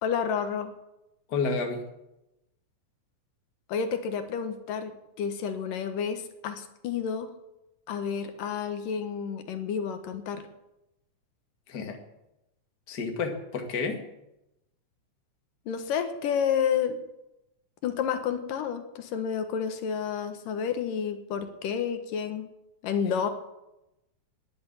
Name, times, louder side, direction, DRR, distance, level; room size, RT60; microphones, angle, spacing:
voice 1, 0.0-0.7 3.7-4.9 5.2-7.3 7.9-10.5 15.7-17.0 17.8-22.5 22.8-23.3, left 7 dB, 80° left, 8 dB, 2.9 m, -30 dB
voice 2, 1.3-1.8 11.7-12.0 12.9-14.0, left 4 dB, 35° left, 4 dB, 2.1 m, -30 dB
12.0 x 10.5 x 9.9 m, 0.89 s
omnidirectional pair, 3.8 m